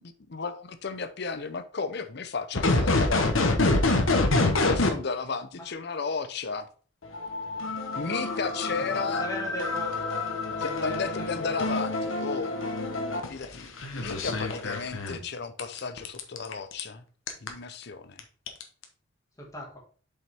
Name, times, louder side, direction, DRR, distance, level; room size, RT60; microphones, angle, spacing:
voice 1, 0.0-3.6 4.4-6.7 8.0-9.3 10.6-12.5 13.3-17.0 17.4-18.2, left 4 dB, 55° left, 0.7 m, -34 dB
sound 1, 2.5-4.9 7.0-15.2 15.6-16.8 17.3-17.5 18.2-18.3 18.5-18.8, left 2 dB, 75° left, 1.2 m, -27 dB
voice 2, 8.8-10.0 10.6-11.8 19.4-19.8, equal, 15° left, 1.9 m, -39 dB
7.5 x 5.5 x 3.5 m
head